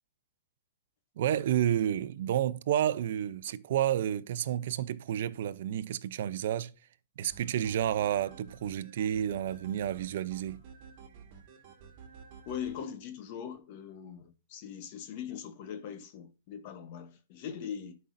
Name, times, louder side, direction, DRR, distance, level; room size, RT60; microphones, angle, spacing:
voice 1, 1.2-6.7 7.2-10.6, right 11 dB, 60° right, 0.5 m, -30 dB
sound 1, 7.3-12.8, right 6 dB, 40° right, 1.9 m, -52 dB
voice 2, 12.5-18.0, left 8 dB, 40° left, 1.0 m, -41 dB
11.5 x 5.5 x 2.6 m
hypercardioid pair, 155°, 0 cm